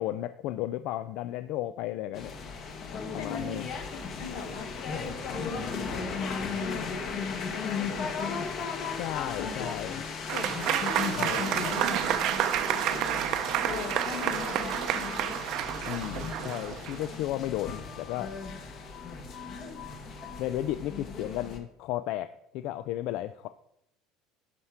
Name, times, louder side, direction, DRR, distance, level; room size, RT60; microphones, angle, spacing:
voice 1, 0.0-2.3 3.1-3.7 8.8-10.0 11.1-11.4 15.8-18.3 20.4-23.5, left 13 dB, 60° left, 13 dB, 0.3 m, -34 dB
sound 1, 2.1-21.6, left 5 dB, 40° left, 1.4 m, -36 dB
voice 2, 3.0-4.7 5.0-8.2 9.4-9.7 10.3-13.3 13.7-15.3, left 5 dB, 90° left, 4 dB, 1.9 m, -41 dB
Applause / Crowd, 10.3-17.1, right 11 dB, 50° right, 0.6 m, -30 dB
11.0 x 5.8 x 4.8 m, 0.78 s
cardioid pair, 150°, 0 cm